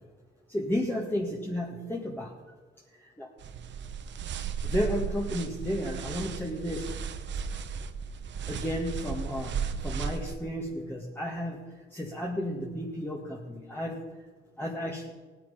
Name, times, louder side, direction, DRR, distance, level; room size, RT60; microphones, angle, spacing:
voice 1, 0.5-2.3 3.2-3.3 4.6-6.9 8.5-9.6 9.8-11.6 11.9-14.0 14.6-15.1, equal, 10° left, -2 dB, 1.9 m, -32 dB
sound 1, 3.4-10.4, right 6 dB, 65° right, 1.0 m, -35 dB
17.5 x 9.3 x 5.5 m, 1.4 s
cardioid pair, 90°, 20 cm